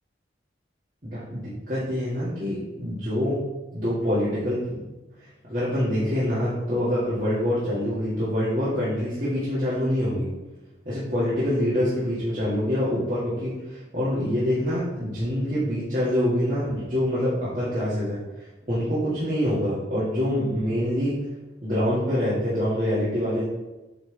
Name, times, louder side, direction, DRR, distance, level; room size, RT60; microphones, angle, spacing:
voice 1, 1.0-3.4 3.7-4.8 5.2-10.3 10.9-21.2 21.6-23.5, equal, 45° right, -11 dB, 1.9 m, -25 dB
8.8 x 3.4 x 3.4 m, 1.1 s
head